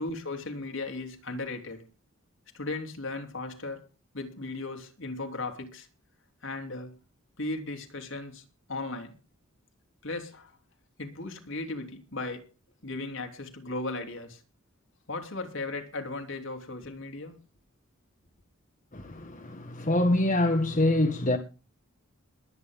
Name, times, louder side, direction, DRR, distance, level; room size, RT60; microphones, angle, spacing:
voice 1, 0.0-1.8 2.5-3.9 4.1-5.9 6.4-6.9 7.4-8.4 8.7-9.1 10.0-10.5 11.0-12.5 12.8-14.4 15.1-17.3, left 2 dB, 60° left, 3.4 m, -36 dB
voice 2, 18.9-21.4, left 1 dB, 40° left, 1.7 m, -25 dB
21.5 x 9.2 x 3.7 m
head